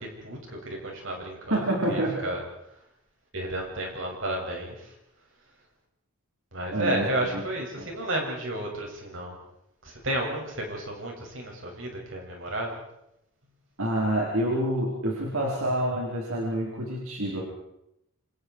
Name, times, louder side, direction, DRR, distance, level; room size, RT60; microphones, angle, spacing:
voice 1, 0.0-1.6 1.9-2.4 3.3-4.9 6.5-9.4 9.8-12.7, right 1 dB, 60° right, 0 dB, 7.2 m, -32 dB
voice 2, 1.5-2.2 6.7-7.0 7.3-7.4 7.8-7.9 13.8-17.4, right 1 dB, 80° right, -2 dB, 4.5 m, -27 dB
28.5 x 25.5 x 4.8 m, 0.81 s
head